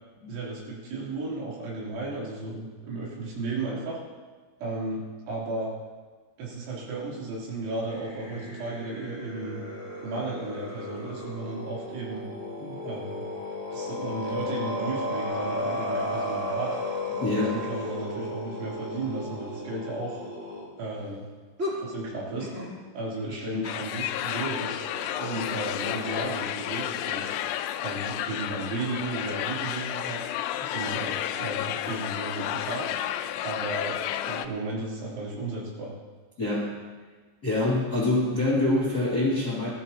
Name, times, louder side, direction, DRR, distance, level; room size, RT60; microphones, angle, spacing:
voice 1, 0.3-4.0 4.6-5.0 5.3-5.7 6.4-9.6 10.0-12.2 12.8-13.2 13.7-16.8 17.3-20.2 20.8-21.3 21.7-22.5 22.9-27.3 27.8-30.3 30.7-32.9 33.4-35.9, right 2 dB, 85° right, -5 dB, 5.7 m, -34 dB
sound 1, 7.9-20.7 21.6-21.8 22.4-22.7 24.5-26.3, left 1 dB, 20° right, 3.1 m, -34 dB
voice 2, 12.6-12.9 17.2-17.6 23.3-23.6 36.4-36.8 37.4-39.7, left 2 dB, 40° left, -6 dB, 1.4 m, -26 dB
sound 2, 23.6-34.5, left 11 dB, 85° left, 2.5 m, -31 dB
19.0 x 13.5 x 2.9 m, 1.4 s
omnidirectional pair, 5.3 m